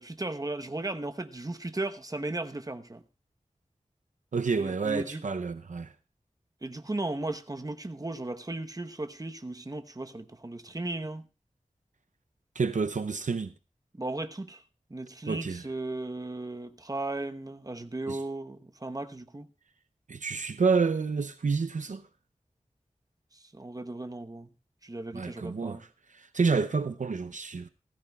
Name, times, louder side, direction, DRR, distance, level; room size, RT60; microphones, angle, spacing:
voice 1, 0.0-3.0 4.6-5.2 6.6-11.3 14.0-14.6 14.9-19.5 23.3-24.5 24.8-25.8, right 2 dB, 30° right, 0.9 m, -36 dB
voice 2, 4.3-5.9 12.6-13.5 15.3-15.6 18.1-18.2 20.1-22.0 25.1-25.9 26.1-27.7, right 4 dB, 75° right, 0.6 m, -29 dB
16.5 x 15.0 x 2.3 m
wide cardioid pair, 60°, 13 cm